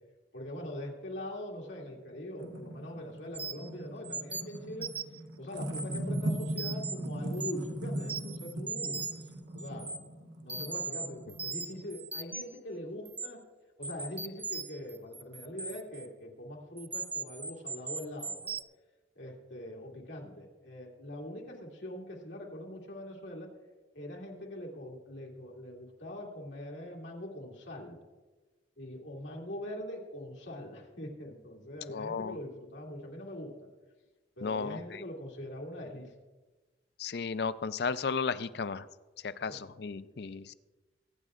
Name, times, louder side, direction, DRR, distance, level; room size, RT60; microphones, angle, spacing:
voice 1, 0.3-4.9 5.4-9.0 9.5-9.9 10.4-13.4 13.8-18.5 19.2-23.5 23.9-28.0 28.8-33.5 34.4-36.1 39.5-39.6, left 1 dB, 85° left, -2 dB, 2.5 m, -42 dB
sound 1, 1.8-11.9, right 1 dB, 90° right, 1.4 m, -39 dB
sound 2, 3.3-3.7 4.0-5.2 5.6-6.9 7.3-7.7 8.0-9.3 9.6-10.0 10.5-12.6 13.1-13.3 13.8-16.1 16.8-18.6, right 4 dB, 10° right, 0.3 m, -38 dB
voice 2, 31.9-32.4 34.4-35.0 37.0-38.9 39.2-40.5, left 5 dB, 60° left, 15 dB, 0.4 m, -34 dB
24.0 x 9.0 x 2.5 m, 1.2 s
head